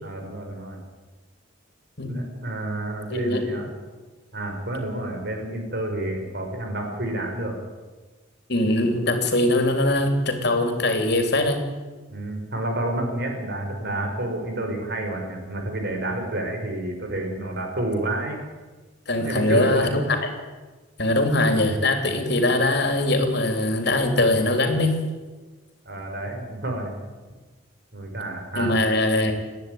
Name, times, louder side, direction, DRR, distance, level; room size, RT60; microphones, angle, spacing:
voice 1, 0.0-0.8 2.1-3.7 4.3-7.6 12.1-18.4 19.2-20.0 25.9-27.0 27.9-28.8, right 1 dB, 55° right, 3 dB, 5.3 m, -29 dB
voice 2, 3.1-3.4 8.5-11.6 19.1-20.3 21.0-25.0 28.5-29.3, left 1 dB, 55° left, 5 dB, 3.4 m, -22 dB
30.0 x 10.5 x 9.4 m, 1.3 s
head